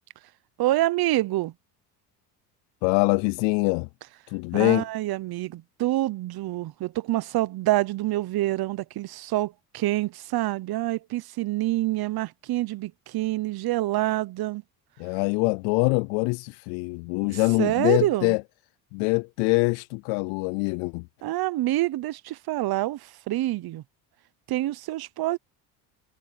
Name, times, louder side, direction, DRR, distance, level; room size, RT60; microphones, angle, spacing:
voice 1, 0.6-1.5 4.5-14.6 17.3-18.3 21.2-23.8 24.5-25.4, right 16 dB, 55° right, 1.0 m, -27 dB
voice 2, 2.8-3.9 4.3-4.9 15.0-18.4 18.9-21.1, left 31 dB, 75° left, 0.6 m, -24 dB
supercardioid pair, 85°, 46 cm